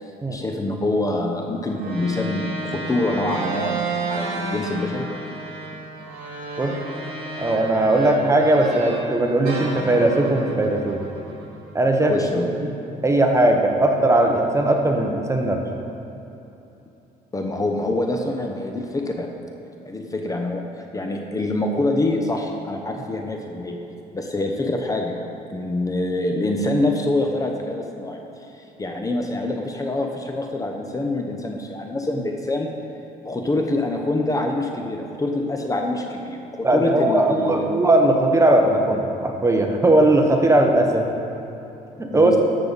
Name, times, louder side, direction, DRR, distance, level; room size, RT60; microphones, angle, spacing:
voice 1, 0.3-5.1 12.1-12.5 17.3-19.3 19.8-20.6 20.9-23.9 24.1-25.2 25.5-28.2 28.5-32.7 33.2-37.7 42.1-42.4, left 2 dB, 20° left, 3 dB, 0.8 m, -25 dB
sound 1, 1.7-9.1 9.4-11.8, right 3 dB, 60° right, 2.2 m, -32 dB
voice 2, 7.4-11.0 11.7-12.7 13.0-15.6 36.6-41.1 42.0-42.4, right 1 dB, 15° right, 3 dB, 0.9 m, -19 dB
12.5 x 6.7 x 4.1 m, 3.0 s
cardioid pair, 110°, 17 cm